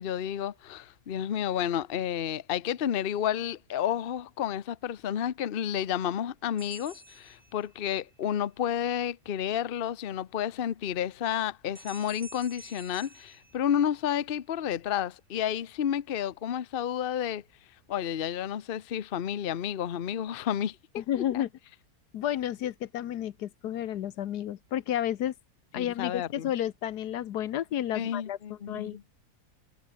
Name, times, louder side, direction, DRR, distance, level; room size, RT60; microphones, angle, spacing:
voice 1, 0.0-17.4 17.9-21.4 25.7-26.5 27.9-29.0, left 9 dB, 45° left, 0.8 m, -31 dB
sound 1, 6.6-8.1 11.7-14.3, right 2 dB, 30° right, 3.0 m, -50 dB
voice 2, 21.0-21.5 22.1-25.3 25.7-29.0, left 11 dB, 80° left, 1.4 m, -31 dB
omnidirectional pair, 1.7 m